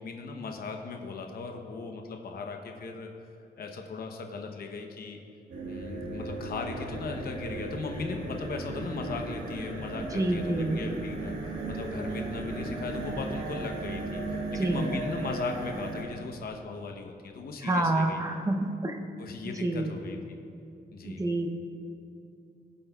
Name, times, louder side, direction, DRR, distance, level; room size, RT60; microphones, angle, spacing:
voice 1, 0.0-3.1 3.6-5.2 5.7-11.3 11.7-18.2 19.2-20.2 20.9-21.2, left 4 dB, 55° left, 3 dB, 0.8 m, -38 dB
sound 1, 5.5-16.0, right 2 dB, 75° right, 1.5 m, -36 dB
voice 2, 10.1-10.8 14.5-14.9 17.6-19.0 19.6-19.9 21.0-21.5, right 2 dB, 20° right, 4 dB, 0.7 m, -28 dB
19.5 x 7.4 x 2.3 m, 2.6 s
wide cardioid pair, 180°, 18 cm